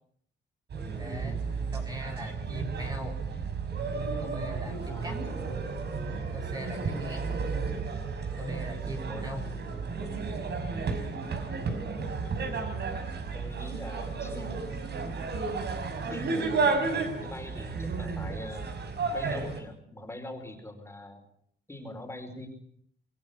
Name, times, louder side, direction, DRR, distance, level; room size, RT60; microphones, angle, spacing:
sound 1, 0.7-19.6, right 4 dB, 55° right, 5.6 m, -32 dB
voice 1, 1.0-1.5 1.7-3.2 4.2-5.2 6.3-7.3 8.4-9.5, equal, 20° right, 2 dB, 4.1 m, -40 dB
voice 2, 4.8-5.5 6.8-7.0 11.8-12.6 13.3-14.8 16.1-18.7 19.1-21.2 21.7-22.5, left 1 dB, 10° left, 5 dB, 4.9 m, -44 dB
26.5 x 21.0 x 7.2 m, 0.66 s
cardioid pair, 135°, 20 cm